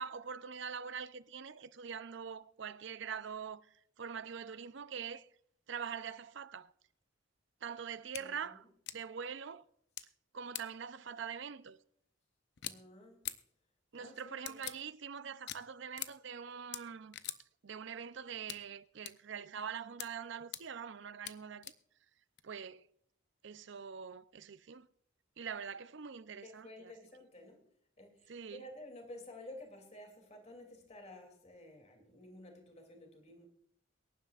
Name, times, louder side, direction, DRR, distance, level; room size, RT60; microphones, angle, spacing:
voice 1, 0.0-5.3 5.7-6.7 7.6-8.6 8.9-9.6 10.3-11.8 13.9-17.2 17.6-21.7 22.4-22.9 23.4-24.9 25.4-26.9 28.3-28.7, right 7 dB, 65° right, 0.6 m, -44 dB
sound 1, 8.1-8.2 8.9-9.0 10.0-10.1 10.5-10.7 12.6-12.7 13.2-13.4 14.5-14.8 15.5-15.6 16.0-16.1 16.7-16.8 17.1-17.4 18.5-18.6 19.1-19.2 20.0-20.1 20.5-20.6 21.3-21.4 21.6-21.7 22.4-22.5, left 12 dB, 60° left, 0.7 m, -41 dB
voice 2, 8.1-8.6 12.6-13.2 13.9-14.6 26.4-27.6 28.0-33.5, left 1 dB, 35° left, 2.8 m, -52 dB
23.5 x 11.0 x 2.5 m
head